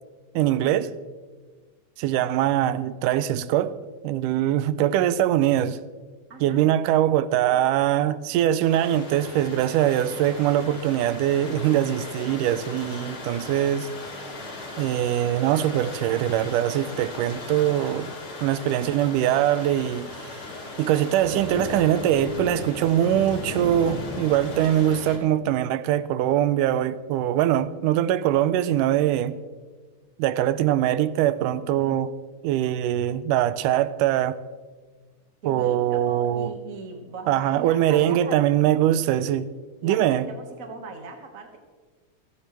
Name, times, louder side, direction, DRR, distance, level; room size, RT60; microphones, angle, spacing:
voice 1, 0.4-0.9 2.0-3.8 4.0-5.8 6.4-13.9 14.8-18.1 18.4-20.3 20.8-29.4 30.2-32.1 32.4-34.4 35.5-36.5 37.3-39.5 39.8-40.3, right 11 dB, 90° right, 2.1 m, -22 dB
voice 2, 6.3-6.6 22.7-22.9 35.4-38.4 39.8-41.6, right 4 dB, 35° right, 1.5 m, -39 dB
sound 1, 8.7-25.2, left 2 dB, 40° left, 3.6 m, -37 dB
28.5 x 9.8 x 3.3 m
omnidirectional pair, 3.6 m